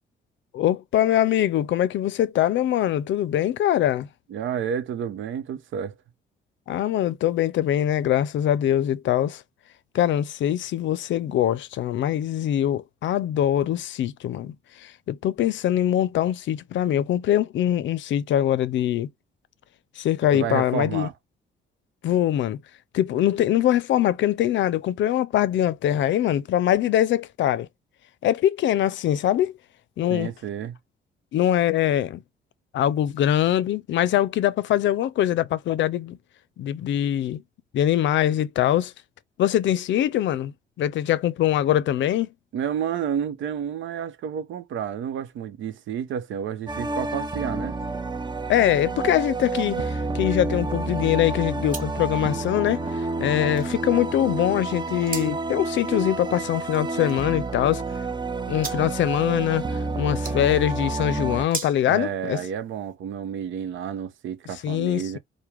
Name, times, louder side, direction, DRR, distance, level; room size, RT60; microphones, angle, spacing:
voice 1, 0.5-4.1 6.7-9.4 9.9-14.5 14.8-19.1 20.0-21.1 22.0-22.6 22.9-27.7 28.2-29.5 30.0-30.3 31.3-32.2 32.7-36.2 36.6-37.4 37.7-38.9 39.4-42.3 48.5-57.8 58.5-62.4 64.6-65.2, left 11 dB, 70° left, 0.5 m, -23 dB
voice 2, 4.3-5.9 20.3-21.1 30.1-30.8 42.5-47.8 61.9-65.2, right 8 dB, 75° right, 0.8 m, -30 dB
sound 1, 46.7-61.5, right 3 dB, 20° right, 0.6 m, -29 dB
sound 2, 47.8-63.0, right 5 dB, 45° right, 1.4 m, -43 dB
4.7 x 2.2 x 3.5 m
cardioid pair, 90°, 20 cm